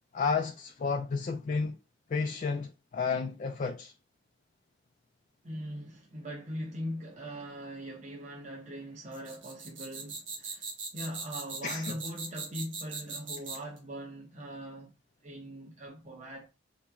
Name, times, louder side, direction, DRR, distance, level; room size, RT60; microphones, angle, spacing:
voice 1, 0.1-1.8 2.1-3.9 11.6-11.9, left 5 dB, 45° left, 0.3 m, -31 dB
voice 2, 5.4-15.0 15.2-16.5, equal, 40° right, 0.8 m, -41 dB
sound 1, 9.1-13.8, right 4 dB, 90° right, 1.1 m, -40 dB
3.9 x 3.0 x 2.3 m
head